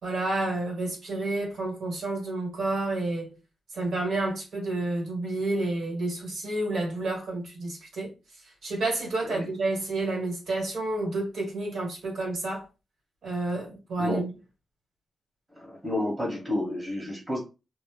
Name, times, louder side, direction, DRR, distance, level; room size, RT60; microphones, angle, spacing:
voice 1, 0.0-3.3 3.7-8.1 8.6-12.6 13.2-14.3, right 2 dB, 70° right, 1.4 m, -30 dB
voice 2, 15.6-17.4, left 1 dB, 10° right, 1.1 m, -30 dB
2.7 x 2.0 x 3.1 m
wide cardioid pair, 135°, 0 cm